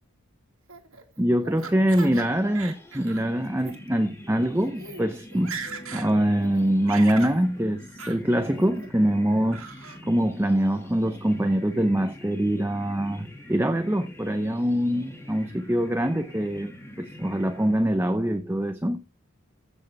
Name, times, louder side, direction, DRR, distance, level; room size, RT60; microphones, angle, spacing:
Laughter, 0.7-2.2 2.5-3.2 3.6-3.8 4.4-4.5 4.7-5.0 5.3-6.1 6.4-7.4 8.0-8.2 8.6-9.1 9.5-10.0, right 5 dB, 70° right, 2.3 m, -39 dB
voice 1, 1.2-5.6 5.9-16.7 17.0-19.0, equal, 10° right, 0.6 m, -24 dB
sound 1, 1.6-18.2, left 1 dB, 10° left, 1.9 m, -45 dB
sound 2, 5.6-8.7, equal, 45° left, 5.2 m, -50 dB
15.0 x 6.3 x 3.4 m
head